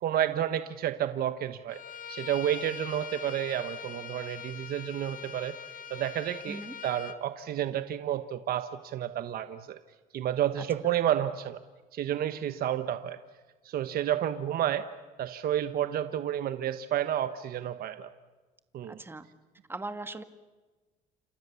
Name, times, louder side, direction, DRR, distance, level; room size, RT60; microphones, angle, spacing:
voice 1, 0.0-1.8 2.1-5.6 5.9-9.8 10.1-11.6 11.9-13.2 13.6-14.8 15.2-18.1 18.7-19.0, right 11 dB, 60° right, 10 dB, 1.2 m, -30 dB
Bowed string instrument, 1.7-7.2, left 7 dB, 55° left, 1.6 m, -43 dB
voice 2, 18.9-19.3 19.7-20.2, right 2 dB, 15° right, 10 dB, 1.8 m, -39 dB
29.0 x 28.0 x 7.1 m, 1.3 s
cardioid pair, 110°, 17 cm